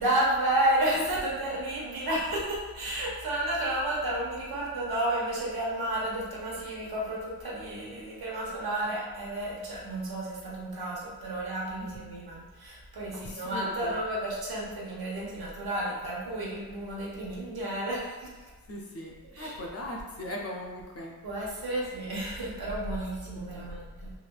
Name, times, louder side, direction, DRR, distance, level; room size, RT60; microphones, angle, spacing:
voice 1, 0.0-18.5 19.3-19.6 21.2-24.1, right 1 dB, 75° right, -5 dB, 0.9 m, -31 dB
voice 2, 11.8-12.2 13.1-14.0 17.3-17.4 18.7-21.2 23.3-23.8, left 1 dB, 40° left, -1 dB, 0.4 m, -40 dB
3.3 x 2.2 x 2.2 m, 1.3 s
wide cardioid pair, 135°, 37 cm